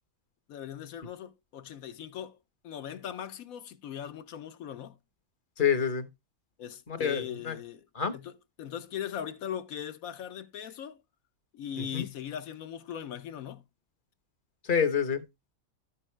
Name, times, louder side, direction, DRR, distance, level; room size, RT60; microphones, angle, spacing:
voice 1, 0.5-2.4 2.6-5.0 6.6-7.9 8.1-8.3 8.6-11.0 11.5-13.6, left 9 dB, 75° left, 1.2 m, -39 dB
voice 2, 5.6-6.1 6.9-7.6 7.9-8.1 11.8-12.1 14.6-15.3, left 7 dB, 40° left, 1.0 m, -28 dB
13.0 x 5.5 x 3.1 m
omnidirectional pair, 1.5 m